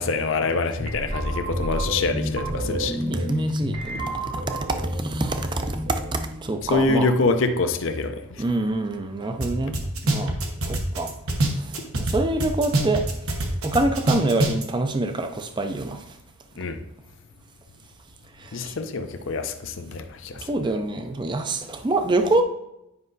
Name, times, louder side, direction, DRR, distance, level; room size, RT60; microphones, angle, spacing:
voice 1, 0.0-3.0 6.7-8.2 16.6-16.8 18.5-20.4, left 3 dB, 60° left, 6 dB, 0.5 m, -25 dB
sound 1, 0.8-7.7, equal, 55° right, 1.5 m, -30 dB
voice 2, 2.4-4.4 4.8-5.8 6.1-7.1 8.4-9.8 10.0-10.3 10.7-11.1 12.0-13.0 13.6-16.0 18.4-18.5 20.5-22.4, right 2 dB, 20° right, 7 dB, 0.4 m, -26 dB
sound 2, 9.4-9.5 9.7-12.1 12.4-14.6, right 2 dB, 80° right, 1.1 m, -23 dB
9.4 x 5.4 x 2.6 m, 0.88 s
head